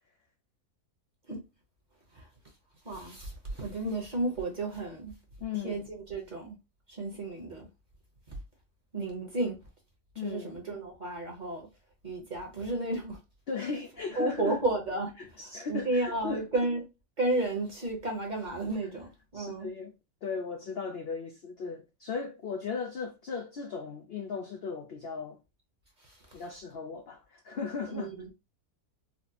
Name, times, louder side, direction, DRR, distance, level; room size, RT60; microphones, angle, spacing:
voice 1, 2.8-5.1 5.6-6.6 6.9-7.7 8.9-9.6 10.2-11.7 12.0-13.2 14.1-15.1 15.7-16.8 17.2-19.7 26.0-26.4 27.9-28.3, right 2 dB, 35° right, 0.9 m, -32 dB
voice 2, 5.4-5.8 9.3-9.5 10.2-10.5 13.5-14.6 15.2-16.4 19.3-19.9 20.2-25.4 26.3-28.1, left 5 dB, 70° left, 0.5 m, -37 dB
4.1 x 2.0 x 2.7 m
omnidirectional pair, 1.6 m